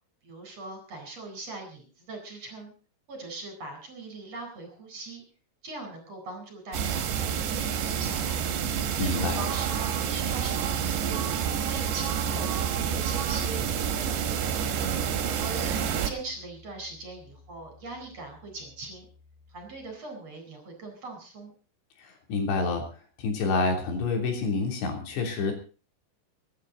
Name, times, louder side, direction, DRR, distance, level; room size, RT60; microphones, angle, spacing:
voice 1, 0.2-2.7 3.1-5.2 5.6-8.4 9.0-11.2 11.7-13.6 13.9-14.6 15.2-19.1 19.5-21.5, right 3 dB, 35° right, 4 dB, 5.1 m, -41 dB
sound 1, 6.7-16.1, right 8 dB, 85° right, 3.9 m, -28 dB
voice 2, 9.0-9.4 22.0-22.8 23.2-25.5, left 3 dB, 75° left, 3 dB, 5.4 m, -28 dB
Piano, 12.2-19.9, left 4 dB, 50° left, 6.5 m, -52 dB
24.0 x 11.0 x 4.1 m, 0.37 s
omnidirectional pair, 5.1 m